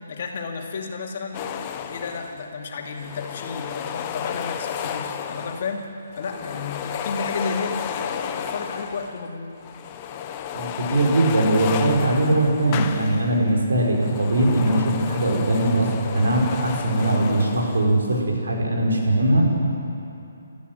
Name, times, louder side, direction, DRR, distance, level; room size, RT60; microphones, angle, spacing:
voice 1, 0.1-1.5 1.7-5.9 6.2-9.5, left 4 dB, 50° left, 1 dB, 2.7 m, -32 dB
sound 1, 1.3-2.5 2.8-5.8 6.1-9.2 9.6-13.4 13.8-18.0, left 8 dB, 25° left, 1.0 m, -32 dB
voice 2, 10.5-15.9 16.1-19.4, right 1 dB, 80° right, -1 dB, 6.0 m, -20 dB
26.5 x 14.0 x 8.1 m, 2.7 s
hypercardioid pair, 160°, 0 cm